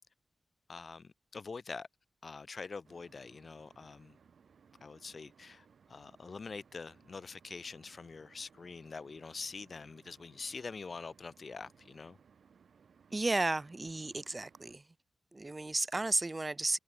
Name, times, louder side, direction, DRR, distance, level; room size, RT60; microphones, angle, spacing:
voice 1, 0.7-1.9 2.2-4.2 4.8-12.2, left 4 dB, 50° left, 3.6 m, -45 dB
sound 1, 2.8-14.8, right 6 dB, 80° right, 3.6 m, -64 dB
voice 2, 13.1-14.8 15.3-16.8, right 2 dB, 25° right, 0.5 m, -33 dB
wide cardioid pair, 95°, 0 cm